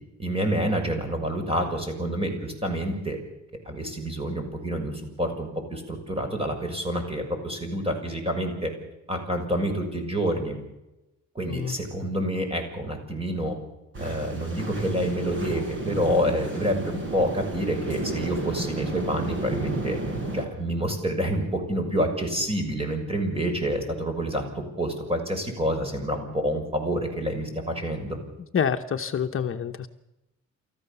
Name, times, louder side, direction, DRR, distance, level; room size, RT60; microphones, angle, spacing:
voice 1, 0.2-3.2 3.6-8.7 9.1-10.6 11.3-13.6 14.0-20.0 20.3-28.2, equal, 20° right, 4 dB, 6.4 m, -28 dB
sound 1, 13.9-20.5, right 2 dB, 40° right, 5.6 m, -32 dB
voice 2, 28.5-29.9, left 7 dB, 45° left, 5 dB, 1.1 m, -27 dB
29.0 x 14.5 x 7.0 m, 0.95 s
cardioid pair, 90°, 30 cm